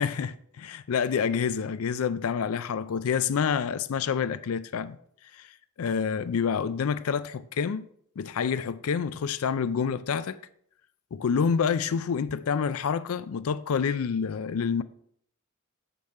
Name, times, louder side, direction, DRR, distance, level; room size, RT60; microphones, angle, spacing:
voice 1, 0.0-5.0 5.3-5.5 5.8-7.9 8.2-10.4 11.1-14.8, left 6 dB, 75° left, 0.4 m, -28 dB
7.9 x 5.4 x 4.2 m
head